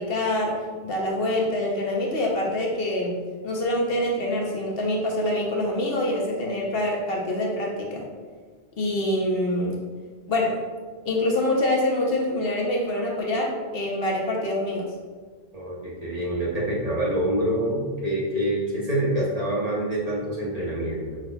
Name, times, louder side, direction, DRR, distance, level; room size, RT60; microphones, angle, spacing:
voice 1, 0.0-3.2 3.4-8.1 8.8-9.8 10.3-10.6 11.0-14.9, left 1 dB, 65° left, -2 dB, 1.0 m, -25 dB
voice 2, 15.5-21.2, right 1 dB, 40° right, -5 dB, 0.9 m, -26 dB
5.6 x 3.7 x 2.2 m, 1.5 s
omnidirectional pair, 1.1 m